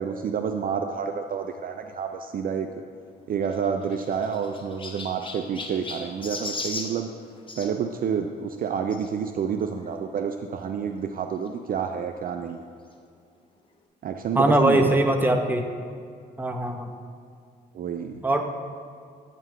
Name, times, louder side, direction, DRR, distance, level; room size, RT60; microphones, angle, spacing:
voice 1, 0.0-2.7 3.3-7.1 7.6-12.6 14.0-14.9 17.7-18.2, right 7 dB, 45° right, 6 dB, 0.4 m, -29 dB
Chirp tweet, 3.4-7.7 8.9-9.1 9.8-9.9 10.1-10.2 11.5-11.6, left 3 dB, 25° left, 0.9 m, -37 dB
voice 2, 14.3-15.6 16.4-16.9 18.2-18.4, right 1 dB, 10° right, 4 dB, 0.8 m, -21 dB
8.9 x 3.0 x 5.6 m, 2.3 s
hypercardioid pair, 50°, 20 cm